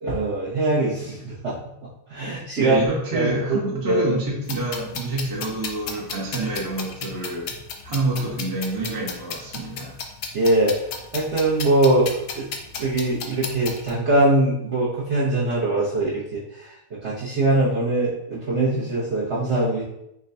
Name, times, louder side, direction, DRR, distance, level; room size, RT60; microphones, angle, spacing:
voice 1, 0.0-1.6 2.1-2.8 3.1-4.1 10.3-10.8 11.1-12.5 12.8-16.4 17.0-19.8, right 2 dB, 55° right, -8 dB, 0.8 m, -22 dB
voice 2, 2.6-7.5 7.8-9.9, right 2 dB, 20° right, -3 dB, 0.6 m, -27 dB
sound 1, 4.5-13.9, left 5 dB, 70° left, 1.0 m, -35 dB
6.2 x 2.2 x 2.7 m, 0.80 s
omnidirectional pair, 2.0 m